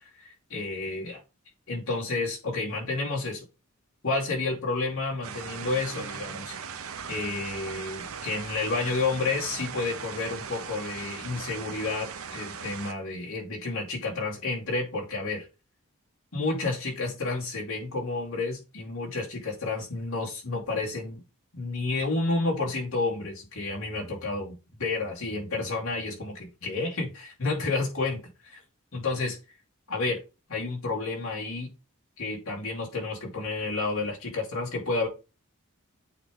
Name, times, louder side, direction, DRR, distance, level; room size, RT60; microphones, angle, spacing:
voice 1, 0.2-1.2 1.7-3.4 4.0-6.5 7.1-15.5 16.3-21.2 21.5-28.6 28.9-29.4 29.9-30.2 30.5-31.7 32.2-35.1, left 3 dB, 85° left, 2.6 m, -30 dB
sound 1, 5.2-12.9, right 6 dB, 80° right, 0.7 m, -39 dB
8.4 x 3.2 x 3.7 m
head